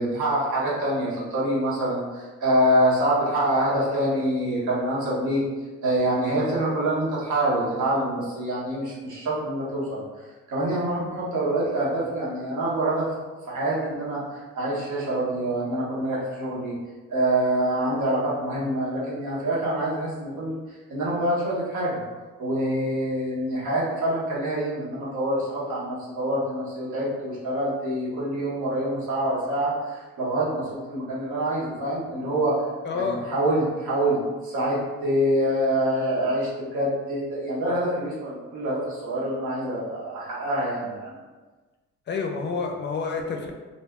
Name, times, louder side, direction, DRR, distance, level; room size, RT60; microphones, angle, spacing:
voice 1, 0.0-5.4 5.8-13.1 13.5-16.7 17.1-22.0 22.4-32.6 32.9-41.2, right 1 dB, 85° right, -6 dB, 1.1 m, -26 dB
voice 2, 32.8-33.3 42.1-43.5, left 5 dB, 35° left, 2 dB, 0.4 m, -28 dB
2.6 x 2.1 x 3.4 m, 1.3 s
cardioid pair, 90°, 30 cm